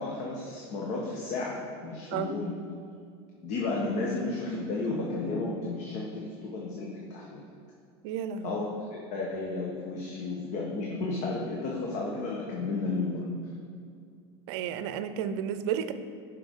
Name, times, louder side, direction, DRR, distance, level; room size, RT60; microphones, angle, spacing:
voice 1, 0.0-2.5 3.4-7.4 8.4-13.2, left 3 dB, 55° left, -2 dB, 1.3 m, -33 dB
voice 2, 8.0-8.6 14.5-15.9, right 9 dB, 70° right, 11 dB, 0.5 m, -32 dB
11.5 x 5.5 x 3.7 m, 2.4 s
supercardioid pair, 110°, 14 cm